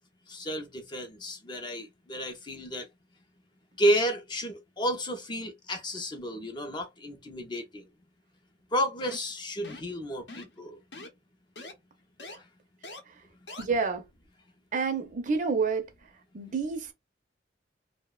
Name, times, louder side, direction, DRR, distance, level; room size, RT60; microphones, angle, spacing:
voice 1, 0.3-2.9 3.8-7.8 8.7-10.8 12.4-12.5, equal, 25° left, 0.4 m, -31 dB
sound 1, 9.0-9.3 9.6-9.9 10.3-10.6 10.9-11.1 11.6-11.7 12.2-12.4 12.8-13.0 13.5-13.6, left 2 dB, 70° left, 0.7 m, -43 dB
voice 2, 13.6-14.0 14.7-15.9 16.3-16.9, right 4 dB, 45° right, 0.5 m, -28 dB
2.7 x 2.1 x 2.2 m
head